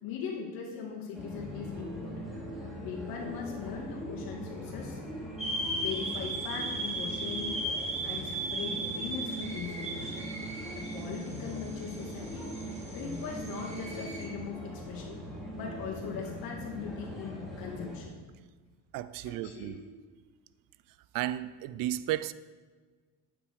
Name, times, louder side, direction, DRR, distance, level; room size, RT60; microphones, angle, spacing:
voice 1, 0.0-2.3 2.8-5.0 5.8-10.2 10.8-12.5 12.9-15.2 15.5-18.1 19.2-19.8, left 6 dB, 75° left, 2.5 m, -40 dB
sound 1, 1.1-18.0, equal, ahead, 2.7 m, -41 dB
sound 2, 5.4-14.3, right 2 dB, 20° right, 2.0 m, -37 dB
voice 2, 18.9-19.8 21.1-22.3, right 13 dB, 65° right, 0.5 m, -33 dB
9.4 x 8.8 x 4.8 m
cardioid pair, 125°, 35 cm